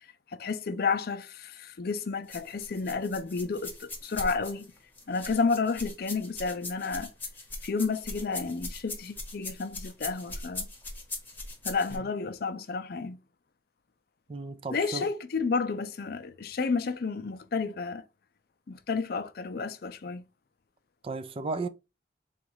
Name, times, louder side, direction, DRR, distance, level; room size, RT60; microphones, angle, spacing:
voice 1, 0.3-4.7 5.1-7.1 7.6-10.7 11.6-13.2 14.7-18.0 18.7-20.2, left 4 dB, 55° left, 0.5 m, -31 dB
sound 1, 2.3-12.0, left 2 dB, 10° left, 1.0 m, -40 dB
voice 2, 14.3-15.1 21.0-21.7, right 3 dB, 30° right, 0.3 m, -34 dB
3.9 x 2.4 x 4.5 m
head